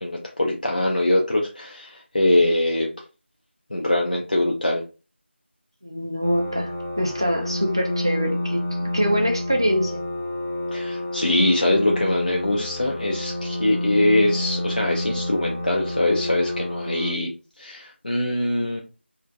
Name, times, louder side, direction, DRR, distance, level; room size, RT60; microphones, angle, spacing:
voice 1, 0.0-2.9 3.7-4.8 10.7-17.3 17.6-18.8, left 1 dB, 45° left, -1 dB, 0.4 m, -22 dB
voice 2, 5.8-6.7 7.0-8.6 8.9-10.0, equal, 25° right, 2 dB, 0.3 m, -24 dB
sound 1, 6.2-17.1, left 1 dB, 5° left, 0.8 m, -29 dB
2.5 x 2.1 x 2.5 m, 0.32 s
figure-of-eight pair, 175°, 6 cm